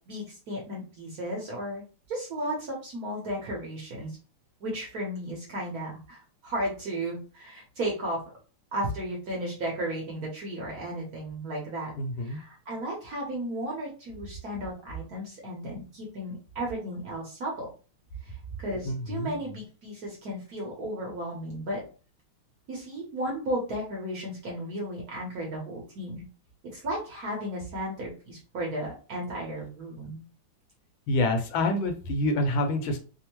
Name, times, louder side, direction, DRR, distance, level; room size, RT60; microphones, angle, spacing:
voice 1, 0.1-4.2 4.6-8.2 8.7-11.9 12.2-17.7 18.2-21.8 22.7-26.2 26.7-30.2, right 1 dB, 60° right, -2 dB, 1.0 m, -34 dB
voice 2, 12.0-12.4 18.9-19.4 31.1-33.0, left 1 dB, 75° left, 6 dB, 1.3 m, -27 dB
3.4 x 2.1 x 2.9 m, 0.35 s
omnidirectional pair, 2.3 m